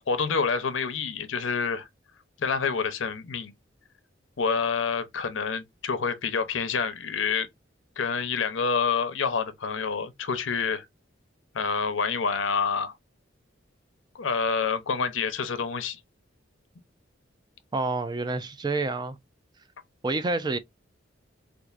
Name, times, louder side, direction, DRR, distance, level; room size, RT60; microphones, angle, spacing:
voice 1, 0.1-1.9 2.4-3.5 4.4-7.5 8.0-10.8 11.5-12.9 14.1-16.0, left 5 dB, 85° left, 0.7 m, -27 dB
voice 2, 17.7-19.2 20.0-20.6, right 3 dB, 20° right, 0.4 m, -28 dB
4.4 x 2.5 x 2.4 m
head